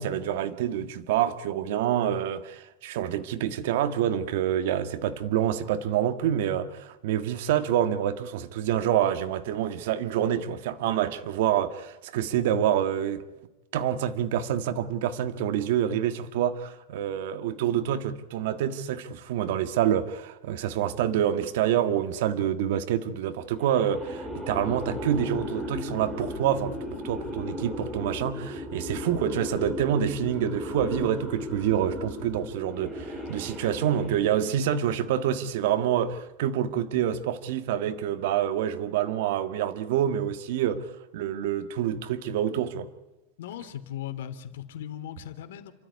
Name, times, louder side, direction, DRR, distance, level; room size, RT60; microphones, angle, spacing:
voice 1, 0.0-13.2 13.7-40.9 41.1-42.9, right 10 dB, 60° right, 1.7 m, -27 dB
sound 1, 23.7-34.8, left 1 dB, 5° right, 3.4 m, -36 dB
voice 2, 43.4-45.7, left 11 dB, 75° left, 3.0 m, -38 dB
29.5 x 13.5 x 9.7 m
supercardioid pair, 165°, 0 cm